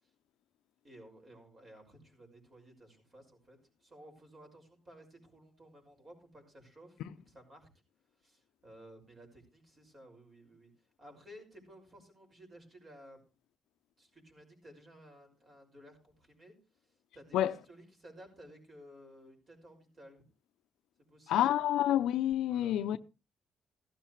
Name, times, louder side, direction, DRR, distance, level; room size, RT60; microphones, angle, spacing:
voice 1, 0.8-7.7 8.2-10.7 11.0-13.2 14.0-20.2 21.1-21.4 22.5-23.0, equal, 35° right, 6.0 m, -56 dB
voice 2, 21.3-23.0, left 12 dB, 85° left, 0.6 m, -28 dB
15.5 x 12.5 x 3.2 m
cardioid pair, 90°, 0 cm